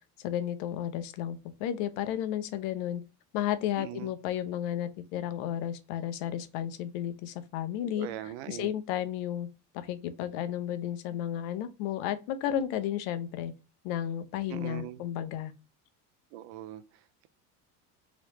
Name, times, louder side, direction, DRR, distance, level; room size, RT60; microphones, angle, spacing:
voice 1, 0.2-3.0 3.3-8.1 8.5-9.5 9.7-13.5 13.8-15.5, left 11 dB, 70° left, 0.7 m, -33 dB
voice 2, 3.8-4.2 7.8-8.7 14.5-15.0 16.3-17.3, right 13 dB, 75° right, 0.6 m, -41 dB
3.1 x 2.9 x 3.0 m
supercardioid pair, 90°, 45 cm